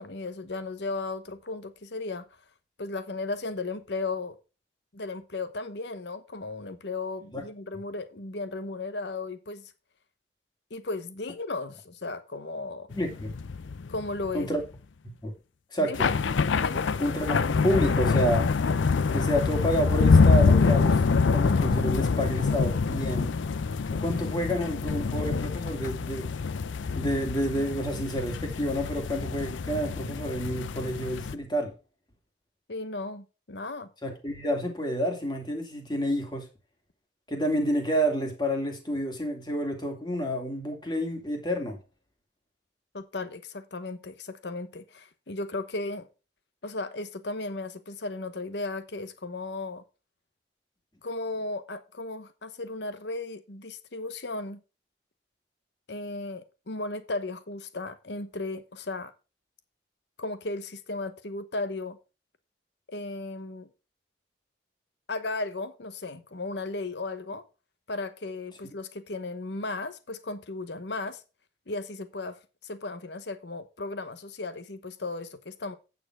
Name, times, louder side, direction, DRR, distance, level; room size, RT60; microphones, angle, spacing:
voice 1, 0.0-2.2 2.8-4.4 4.9-9.7 10.7-12.9 13.9-14.5 15.8-16.1 16.6-16.9 32.7-33.9 42.9-46.1 46.6-49.8 51.0-54.6 55.9-59.1 60.2-62.0 62.9-63.7 65.1-67.4 67.9-71.2 71.7-72.4 72.6-75.7, left 3 dB, 70° left, 1.0 m, -35 dB
sound 1, 12.9-14.6 15.9-31.3, left 4 dB, 90° left, 0.5 m, -25 dB
voice 2, 12.9-13.3 14.3-14.6 15.0-15.3 15.7-16.1 17.0-18.5 19.1-21.0 21.3-23.3 24.0-26.3 26.9-31.7 34.0-36.5 37.3-41.8, equal, 25° left, 2.3 m, -29 dB
9.0 x 7.0 x 4.6 m
head